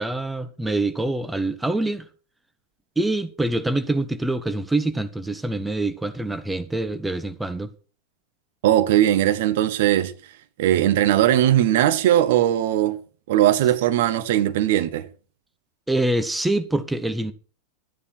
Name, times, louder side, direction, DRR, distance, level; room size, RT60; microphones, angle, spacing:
voice 1, 0.0-2.1 3.0-7.7 15.9-17.3, right 2 dB, 5° right, 0.8 m, -25 dB
voice 2, 8.6-10.1 10.6-13.0 13.3-15.1, right 12 dB, 55° right, 1.1 m, -19 dB
12.5 x 9.8 x 4.5 m
figure-of-eight pair, 90°, 0 cm